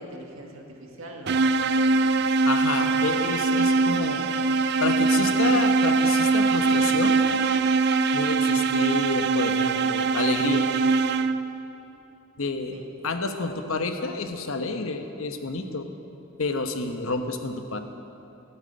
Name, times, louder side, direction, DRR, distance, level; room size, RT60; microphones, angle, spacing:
voice 1, 0.0-2.1 5.2-5.5 12.7-12.8, right 1 dB, 80° right, 1 dB, 1.9 m, -42 dB
sound 1, 1.3-11.6, right 4 dB, 50° right, 0.4 m, -22 dB
voice 2, 2.4-4.3 4.8-7.2 8.1-10.7 12.4-12.8 13.0-15.9 16.4-17.8, left 3 dB, 85° left, 7 dB, 1.0 m, -29 dB
12.5 x 8.9 x 8.8 m, 2.8 s
head